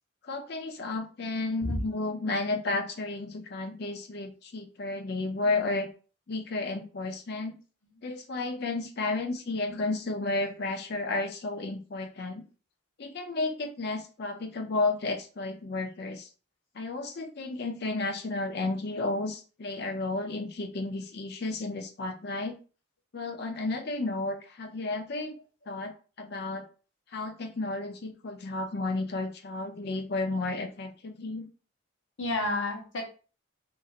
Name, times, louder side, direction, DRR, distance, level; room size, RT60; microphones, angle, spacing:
voice 1, 0.2-5.9 6.3-7.6 8.0-12.4 13.0-16.3 16.7-22.6 23.1-25.3 25.7-26.6 27.1-31.5, left 2 dB, 55° left, 5 dB, 0.5 m, -32 dB
voice 2, 32.2-33.0, left 2 dB, 75° left, 0 dB, 1.0 m, -31 dB
2.7 x 2.6 x 2.4 m, 0.36 s
head